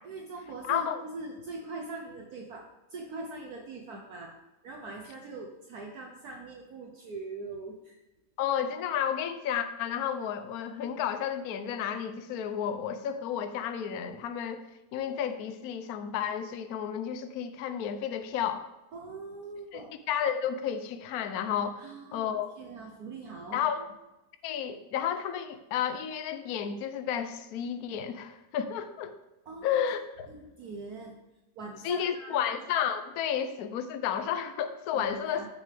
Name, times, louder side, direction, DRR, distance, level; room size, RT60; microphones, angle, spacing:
voice 1, 0.0-4.4 4.6-8.0 18.9-19.9 21.8-23.9 29.4-29.8 30.3-31.1 31.5-32.4 34.9-35.5, right 3 dB, 60° right, 1 dB, 1.5 m, -42 dB
voice 2, 0.7-1.0 8.4-14.7 14.9-18.7 19.7-19.8 20.1-21.8 22.1-22.5 23.5-23.9 24.4-29.1 29.6-30.3 31.8-35.5, left 8 dB, 65° left, 10 dB, 1.1 m, -32 dB
14.5 x 6.7 x 3.5 m, 1.0 s
omnidirectional pair, 1.9 m